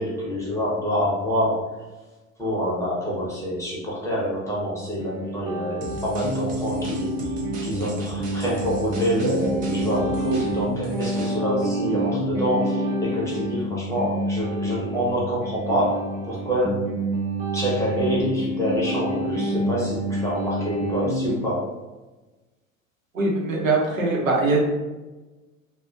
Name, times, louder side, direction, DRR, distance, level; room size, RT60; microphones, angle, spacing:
voice 1, 0.0-1.6 2.4-16.8 17.5-21.7, equal, 5° left, -7 dB, 0.8 m, -26 dB
sound 1, 4.8-21.3, right 1 dB, 45° right, 0.9 m, -28 dB
sound 2, 5.8-11.4, right 2 dB, 20° right, 0.3 m, -38 dB
voice 2, 23.1-24.6, right 3 dB, 80° right, -3 dB, 0.7 m, -22 dB
2.4 x 2.1 x 2.5 m, 1.2 s
figure-of-eight pair, 70°, 41 cm